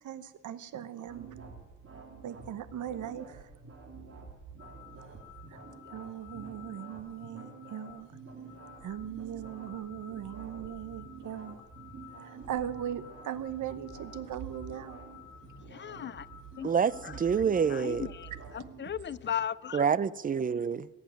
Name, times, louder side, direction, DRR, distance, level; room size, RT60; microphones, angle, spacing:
voice 1, 0.0-1.3 2.2-3.5 5.5-5.6 5.9-8.1 8.8-11.6 12.2-15.0, right 10 dB, 70° right, 1.0 m, -39 dB
sound 1, 1.0-19.3, right 5 dB, 45° right, 3.4 m, -48 dB
sound 2, 4.6-18.4, left 11 dB, 75° left, 2.4 m, -55 dB
voice 2, 15.6-16.3 16.6-16.7 17.0-17.2 17.7-19.9, left 8 dB, 35° left, 0.4 m, -37 dB
voice 3, 16.6-18.1 19.7-20.9, right 6 dB, 25° right, 0.5 m, -27 dB
20.0 x 8.5 x 7.6 m
cardioid pair, 105°, 31 cm